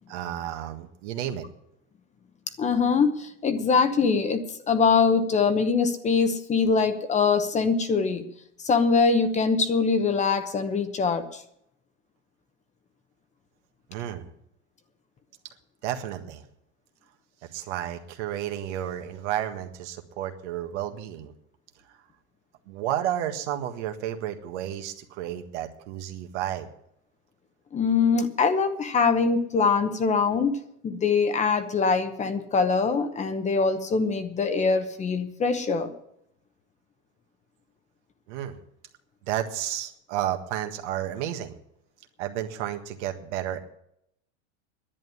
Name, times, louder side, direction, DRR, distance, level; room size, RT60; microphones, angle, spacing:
voice 1, 0.1-1.4 13.9-14.3 15.8-16.4 17.5-21.3 21.9-22.0 22.7-26.7 38.3-38.6 39.3-41.5 42.2-43.6, right 11 dB, 70° right, 6 dB, 1.7 m, -32 dB
voice 2, 2.6-8.3 8.6-11.4 27.7-35.9, left 5 dB, 20° left, 9 dB, 0.9 m, -23 dB
11.0 x 9.2 x 9.6 m, 0.75 s
supercardioid pair, 145°, 36 cm